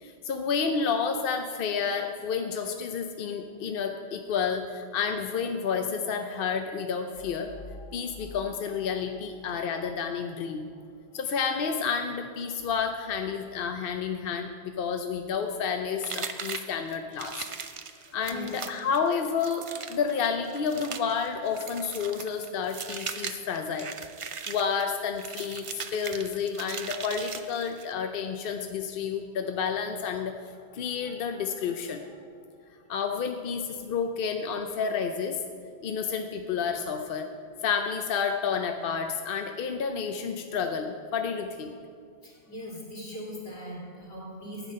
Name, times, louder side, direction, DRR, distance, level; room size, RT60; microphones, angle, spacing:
voice 1, 0.0-10.7 11.1-17.5 18.1-23.9 24.5-32.1 32.9-35.4 35.8-37.3 37.6-41.7, left 6 dB, 65° left, 6 dB, 0.8 m, -30 dB
sound 1, 7.1-10.1, left 1 dB, 35° left, 0.5 m, -48 dB
sound 2, 16.0-27.9, right 6 dB, 45° right, 0.4 m, -39 dB
voice 2, 42.2-44.7, equal, 80° left, -4 dB, 3.1 m, -40 dB
11.0 x 8.3 x 5.4 m, 2.2 s
omnidirectional pair, 1.1 m